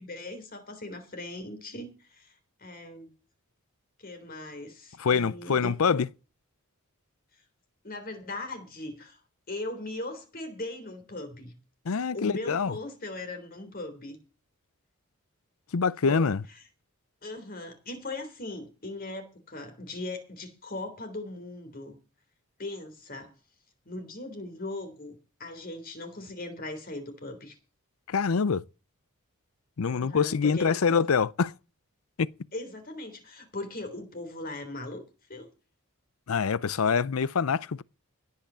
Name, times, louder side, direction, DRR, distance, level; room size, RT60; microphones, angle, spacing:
voice 1, 0.0-3.1 4.0-6.0 7.8-9.2 9.5-11.5 12.1-14.2 16.0-16.3 17.2-22.0 22.6-23.3 23.9-27.6 29.9-31.0 32.5-35.0 35.3-35.5, left 2 dB, 40° left, 3.5 m, -39 dB
voice 2, 5.0-6.1 11.9-12.7 15.7-16.4 28.1-28.6 29.8-31.5 32.2-32.3 36.3-37.8, left 5 dB, 75° left, 0.5 m, -25 dB
17.0 x 5.7 x 7.4 m
head